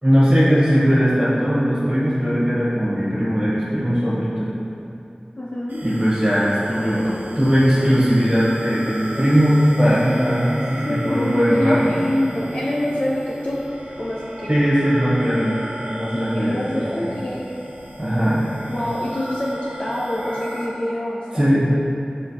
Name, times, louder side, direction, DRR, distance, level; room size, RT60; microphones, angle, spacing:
voice 1, 0.0-4.5 5.8-7.1 7.3-11.9 14.5-15.6 15.9-16.6 16.9-17.1 18.0-18.4 21.3-21.7, equal, 25° right, -10 dB, 1.0 m, -19 dB
voice 2, 5.4-5.8 10.8-13.6 14.0-14.6 16.3-17.4 18.7-21.8, left 1 dB, 40° left, -6 dB, 0.4 m, -25 dB
sound 1, 5.7-20.7, right 1 dB, 85° right, 0.6 m, -35 dB
4.3 x 4.0 x 2.7 m, 2.6 s
wide cardioid pair, 50°, 3 cm